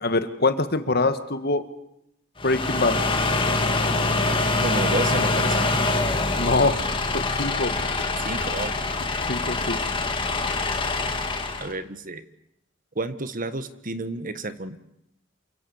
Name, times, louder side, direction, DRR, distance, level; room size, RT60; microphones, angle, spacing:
voice 1, 0.0-1.6 2.4-3.0 6.4-6.8 7.1-7.7 9.3-9.8, left 3 dB, 50° left, 10 dB, 1.9 m, -24 dB
sound 1, 2.4-11.7, left 3 dB, 25° left, 2.5 m, -24 dB
voice 2, 4.6-5.8 8.2-8.8 11.6-12.2 12.9-14.8, right 2 dB, 45° right, 12 dB, 1.6 m, -31 dB
sound 2, 5.3-10.3, left 2 dB, 80° left, 4.0 m, -43 dB
28.5 x 25.0 x 7.3 m, 0.79 s
head